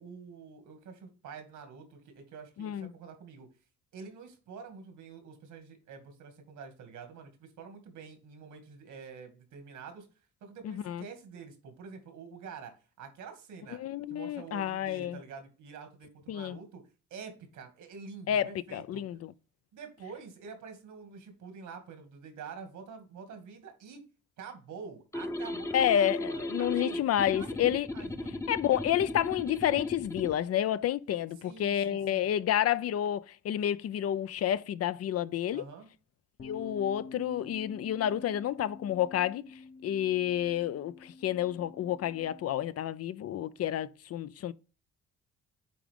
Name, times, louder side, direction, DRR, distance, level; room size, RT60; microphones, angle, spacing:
voice 1, 0.0-3.5 3.9-10.1 10.4-13.8 14.1-16.8 17.1-19.1 19.7-24.0 24.4-28.4 31.4-32.3 35.5-35.9, right 5 dB, 80° right, 2.1 m, -47 dB
voice 2, 2.6-2.9 10.6-11.0 13.8-15.2 16.3-16.6 18.3-19.3 25.7-27.9 28.5-35.6 36.4-39.4 39.8-44.5, left 11 dB, 55° left, 0.5 m, -30 dB
sound 1, 25.1-30.4, left 1 dB, 10° left, 0.7 m, -36 dB
sound 2, 36.4-42.6, left 4 dB, 40° left, 0.9 m, -48 dB
8.5 x 3.7 x 3.5 m
cardioid pair, 90°, 30 cm